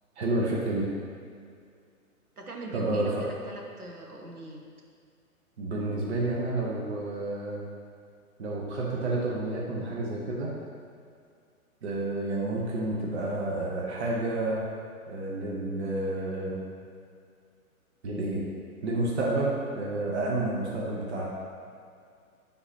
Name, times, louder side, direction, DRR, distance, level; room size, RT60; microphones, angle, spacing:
voice 1, 0.2-0.9 2.7-3.1 5.6-7.6 8.4-10.5 11.8-14.6 15.1-16.6 18.0-18.4 18.8-21.3, right 2 dB, 50° right, -4 dB, 1.1 m, -30 dB
voice 2, 2.4-4.6, right 3 dB, 85° right, 0 dB, 1.1 m, -40 dB
9.4 x 3.9 x 2.9 m, 2.2 s
figure-of-eight pair, 125°, 44 cm